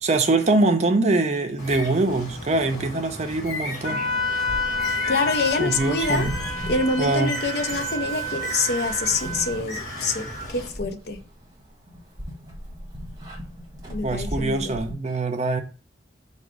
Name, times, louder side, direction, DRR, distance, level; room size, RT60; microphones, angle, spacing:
voice 1, 0.0-4.0 5.6-6.3 7.0-7.4 14.0-15.6, right 2 dB, 40° right, 0.5 m, -23 dB
Bird, 1.6-10.7, left 1 dB, 45° left, 1.4 m, -35 dB
Wind instrument woodwind instrument, 3.8-9.6, left 1 dB, 25° left, 1.5 m, -29 dB
sound 1, 4.1-14.9, equal, 20° right, 1.1 m, -38 dB
voice 2, 5.1-6.3 6.7-11.2 13.9-14.7, left 3 dB, 65° left, 0.6 m, -26 dB
4.7 x 2.4 x 4.8 m
head